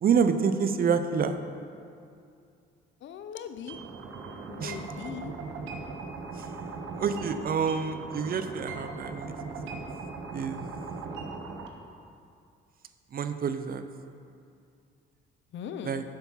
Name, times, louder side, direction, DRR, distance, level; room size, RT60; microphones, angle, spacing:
voice 1, 0.0-1.4 4.6-4.7 7.0-9.3 10.3-10.6 13.1-13.8 15.8-16.0, right 6 dB, 50° right, 9 dB, 0.6 m, -27 dB
voice 2, 3.0-3.8 4.5-5.3 15.5-16.0, left 8 dB, 70° left, 9 dB, 0.6 m, -39 dB
sound 1, 3.7-11.7, right 4 dB, 80° right, 1.0 m, -39 dB
7.6 x 7.1 x 5.6 m, 2.4 s
cardioid pair, 90°, 20 cm